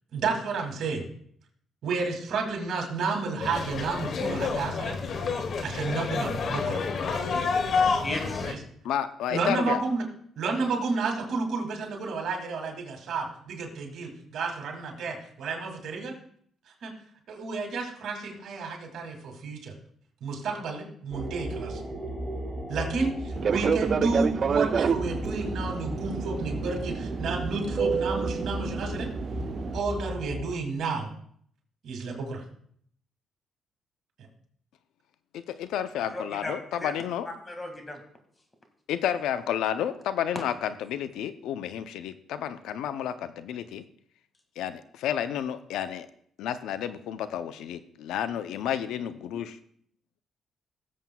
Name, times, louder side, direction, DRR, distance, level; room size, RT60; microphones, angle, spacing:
voice 1, 0.1-1.1 1.8-5.0 5.6-6.8 8.4-8.6 9.3-10.0 10.4-16.1 16.8-16.9 17.3-19.7 20.2-21.8 22.7-29.1 29.7-31.1 31.8-32.4, right 4 dB, 70° right, 2 dB, 2.5 m, -31 dB
sound 1, 3.4-8.5, left 5 dB, 60° left, 1.1 m, -29 dB
voice 2, 8.0-8.5 36.0-38.0, left 1 dB, 25° left, 4 dB, 2.0 m, -36 dB
voice 3, 8.8-9.8 35.3-37.3 38.9-43.8 44.6-46.1 46.4-49.5, left 9 dB, 85° left, 12 dB, 0.5 m, -31 dB
sound 2, 21.1-30.5, right 1 dB, 5° right, 2.0 m, -35 dB
Fixed-wing aircraft airplane, 23.4-29.8, right 6 dB, 50° right, 0.3 m, -29 dB
18.5 x 7.5 x 2.3 m, 0.62 s
cardioid pair, 90°, 0 cm